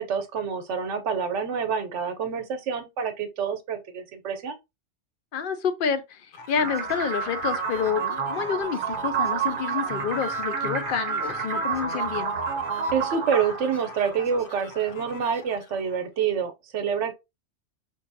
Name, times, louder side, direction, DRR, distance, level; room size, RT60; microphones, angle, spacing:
voice 1, 0.0-4.6 12.9-17.1, right 7 dB, 75° right, 1.0 m, -27 dB
voice 2, 5.3-6.2 6.5-12.3, left 7 dB, 55° left, 0.7 m, -28 dB
sound 1, 6.3-16.1, left 4 dB, 80° left, 1.1 m, -45 dB
sound 2, 6.6-14.5, right 6 dB, 50° right, 0.8 m, -29 dB
5.2 x 2.6 x 2.6 m
omnidirectional pair, 1.2 m